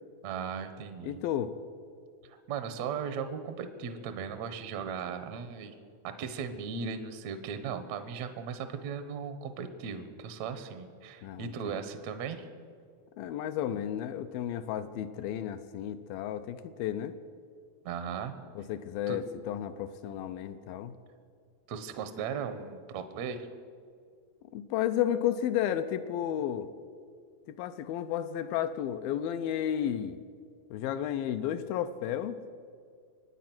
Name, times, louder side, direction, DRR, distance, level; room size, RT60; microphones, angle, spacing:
voice 1, 0.2-1.2 2.2-5.7 6.0-12.5 17.8-18.4 19.1-19.2 21.7-23.5, right 6 dB, 75° right, 10 dB, 1.6 m, -37 dB
voice 2, 1.0-1.5 11.2-11.8 13.2-17.1 18.6-21.0 24.5-26.7 27.5-30.2 30.7-32.4, left 10 dB, 80° left, 10 dB, 2.3 m, -32 dB
24.5 x 9.3 x 6.0 m, 2.1 s
omnidirectional pair, 4.4 m